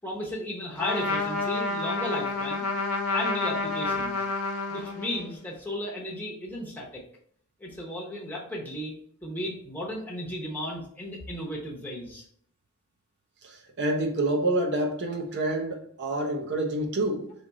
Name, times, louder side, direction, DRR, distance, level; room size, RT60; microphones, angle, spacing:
voice 1, 0.0-2.6 3.1-4.2 4.7-7.0 7.6-8.9 9.2-12.2, left 1 dB, 10° left, -4 dB, 0.9 m, -34 dB
Trumpet, 0.8-5.3, left 3 dB, 80° left, 0.7 m, -29 dB
voice 2, 13.4-17.3, right 1 dB, 55° right, 2 dB, 0.8 m, -28 dB
3.7 x 3.5 x 4.0 m, 0.64 s
head